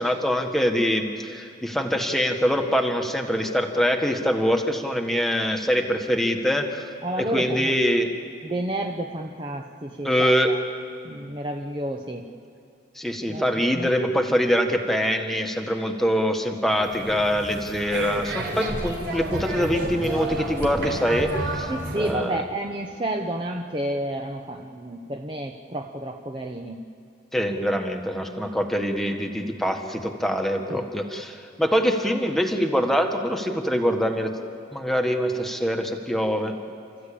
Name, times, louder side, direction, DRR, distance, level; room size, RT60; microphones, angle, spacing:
voice 1, 0.0-6.9 7.2-8.1 10.0-10.5 12.9-22.4 27.3-34.3 34.7-36.6, equal, ahead, 3 dB, 1.5 m, -24 dB
voice 2, 7.0-7.8 8.4-10.6 11.0-12.3 13.3-13.4 13.7-13.9 21.7-26.8 30.7-30.8, right 1 dB, 25° right, 2 dB, 0.9 m, -30 dB
sound 1, 16.7-22.2, right 1 dB, 60° right, 4.1 m, -31 dB
30.0 x 14.5 x 8.7 m, 2.5 s
head